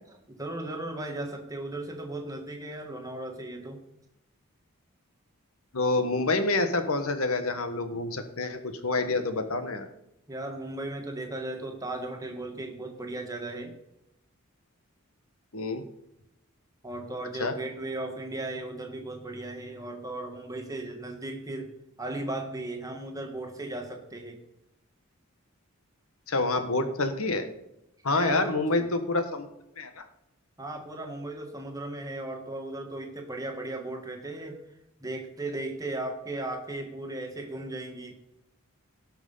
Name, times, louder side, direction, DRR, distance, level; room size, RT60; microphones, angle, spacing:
voice 1, 0.1-3.8 10.3-13.7 16.8-21.7 22.0-24.4 28.1-28.8 30.6-34.6 35.0-38.1, right 2 dB, 15° right, 3 dB, 1.8 m, -36 dB
voice 2, 5.7-9.9 15.5-15.8 17.4-17.5 26.3-27.5 28.0-29.5 29.8-30.0, left 2 dB, 75° left, 8 dB, 1.4 m, -27 dB
17.5 x 6.1 x 5.6 m, 0.85 s
head